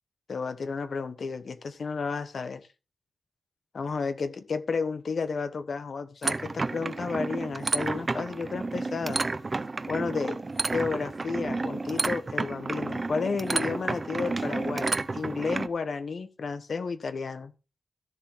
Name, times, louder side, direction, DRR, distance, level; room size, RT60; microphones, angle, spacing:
voice 1, 0.3-2.6 3.7-9.2 9.9-10.4 10.7-17.5, left 4 dB, 60° left, 1.2 m, -32 dB
sound 1, 6.2-15.7, right 3 dB, 30° right, 0.6 m, -31 dB
13.0 x 7.3 x 3.9 m
wide cardioid pair, 155°, 0 cm